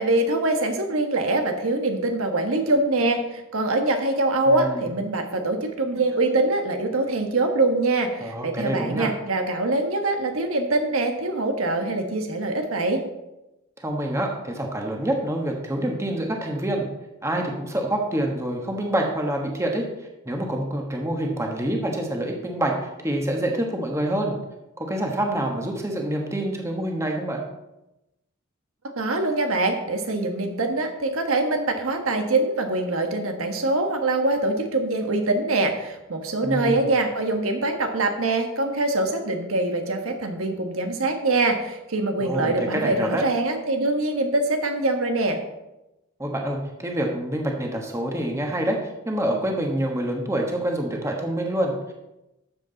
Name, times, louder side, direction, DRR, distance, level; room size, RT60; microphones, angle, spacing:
voice 1, 0.0-13.0 29.0-45.4, right 2 dB, 75° right, 5 dB, 1.4 m, -24 dB
voice 2, 4.5-4.8 8.2-9.1 13.8-16.9 17.2-19.9 20.2-22.7 23.0-24.3 24.8-27.4 36.4-36.8 42.2-43.2 46.2-51.9, right 1 dB, 15° right, 1 dB, 1.4 m, -26 dB
13.0 x 7.7 x 4.0 m, 0.95 s
head